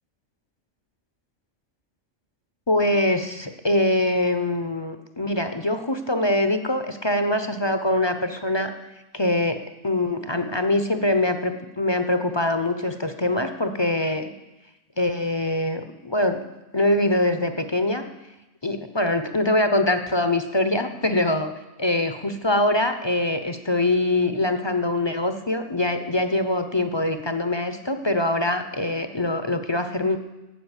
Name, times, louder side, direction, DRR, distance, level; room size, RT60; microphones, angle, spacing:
voice 1, 2.7-8.7 9.1-14.3 15.0-16.4 16.7-18.0 18.6-21.5 21.8-30.2, left 1 dB, 25° left, 8 dB, 0.7 m, -23 dB
13.0 x 7.8 x 9.8 m, 1.0 s
omnidirectional pair, 1.4 m